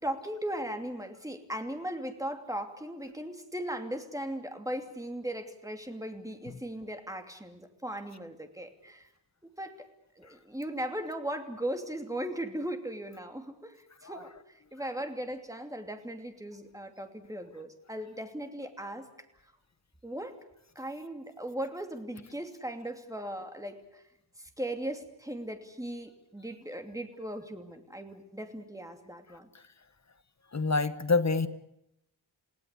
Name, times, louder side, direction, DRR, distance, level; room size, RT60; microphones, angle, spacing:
voice 1, 0.0-9.1 9.6-9.7 10.2-13.8 14.0-19.1 20.0-20.4 20.7-24.0 24.4-29.5, right 1 dB, 5° right, 5 dB, 2.8 m, -38 dB
voice 2, 30.5-31.5, left 3 dB, 40° left, 12 dB, 1.3 m, -27 dB
29.0 x 18.0 x 8.4 m, 0.82 s
wide cardioid pair, 120°, 43 cm